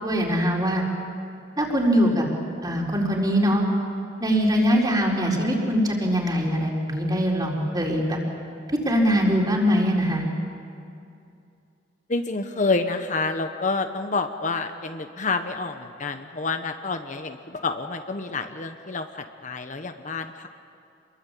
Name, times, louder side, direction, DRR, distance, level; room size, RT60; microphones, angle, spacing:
voice 1, 0.0-0.8 1.6-2.2 2.6-3.6 4.2-8.2 8.8-10.3, equal, 25° right, -1 dB, 4.5 m, -22 dB
voice 2, 12.1-20.5, left 3 dB, 45° left, 7 dB, 1.1 m, -28 dB
27.5 x 22.0 x 8.5 m, 2.5 s
head